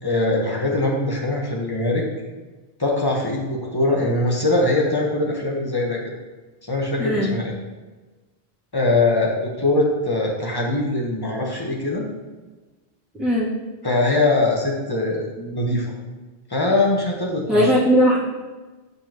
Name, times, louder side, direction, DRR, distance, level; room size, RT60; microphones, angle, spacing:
voice 1, 0.0-2.1 2.8-6.1 6.6-7.5 8.7-12.0 13.8-15.9 16.5-17.7, left 2 dB, 20° left, -2 dB, 1.3 m, -22 dB
voice 2, 7.0-7.3 13.2-13.5 17.5-18.2, equal, ahead, -10 dB, 2.6 m, -18 dB
10.5 x 5.5 x 3.0 m, 1.2 s
omnidirectional pair, 1.1 m